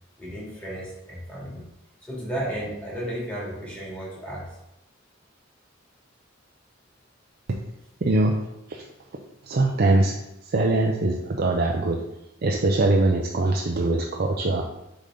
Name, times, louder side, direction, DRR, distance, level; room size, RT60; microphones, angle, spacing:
voice 1, 0.2-1.6 2.1-4.5, right 1 dB, 5° left, -7 dB, 2.3 m, -33 dB
voice 2, 8.0-8.4 8.7-8.9 9.4-10.2 10.4-12.0 12.4-14.6, right 2 dB, 50° right, 0 dB, 0.5 m, -22 dB
6.7 x 4.1 x 3.8 m, 0.88 s
head